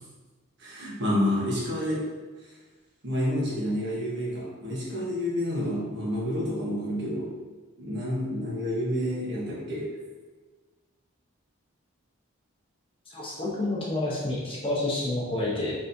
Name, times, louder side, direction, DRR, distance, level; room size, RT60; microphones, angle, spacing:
voice 1, 0.6-2.0 3.0-7.3 7.8-9.9, left 1 dB, 55° right, -6 dB, 1.2 m, -29 dB
voice 2, 13.1-15.7, left 2 dB, 25° left, -5 dB, 0.8 m, -29 dB
4.2 x 3.4 x 2.7 m, 1.3 s
head